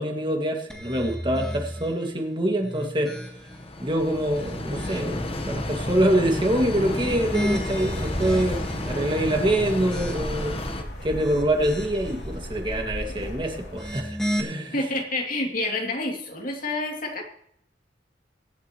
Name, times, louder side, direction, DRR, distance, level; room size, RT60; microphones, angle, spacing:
voice 1, 0.0-3.1 3.8-10.5 11.0-14.7, right 1 dB, 25° right, 2 dB, 2.1 m, -25 dB
sound 1, 0.7-2.0 2.5-3.7 4.2-5.3 6.8-8.9 9.4-10.5 11.0-12.1 13.6-14.4, equal, 5° left, 1.6 m, -33 dB
sound 2, 3.2-10.8, left 1 dB, 35° left, 1.1 m, -32 dB
sound 3, 6.5-13.9, equal, 70° left, 3.2 m, -36 dB
voice 2, 14.7-17.2, left 2 dB, 50° left, 1 dB, 2.7 m, -28 dB
24.0 x 8.1 x 3.1 m, 0.71 s
head